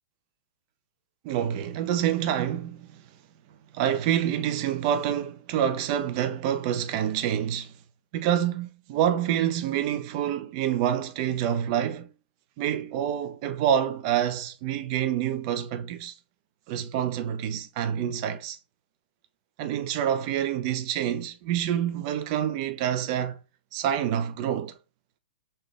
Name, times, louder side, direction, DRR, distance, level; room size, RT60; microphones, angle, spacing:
voice 1, 1.2-3.0 3.7-7.7 8.1-12.1 12.6-16.1 16.7-18.6 19.6-23.4 23.7-24.8, right 10 dB, 35° right, 0.4 m, -27 dB
3.3 x 2.2 x 3.3 m
figure-of-eight pair, 110°, 6 cm